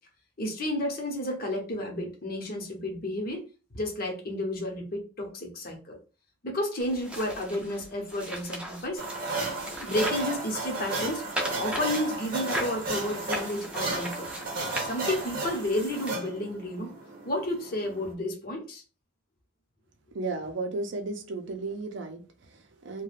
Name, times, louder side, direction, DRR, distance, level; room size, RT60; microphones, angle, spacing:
voice 1, 0.4-3.4 3.7-6.0 6.4-9.0 9.8-11.2 11.5-14.3 14.8-16.9 17.2-18.8, left 1 dB, 45° left, 2 dB, 0.8 m, -31 dB
sound 1, 6.8-10.3 10.7-15.4 16.1-16.2, right 1 dB, 5° right, 0.5 m, -38 dB
sound 2, 9.0-18.1, right 2 dB, 45° right, 0.8 m, -34 dB
voice 2, 20.1-23.0, right 3 dB, 65° right, 5 dB, 0.5 m, -34 dB
2.4 x 2.2 x 3.2 m, 0.33 s
head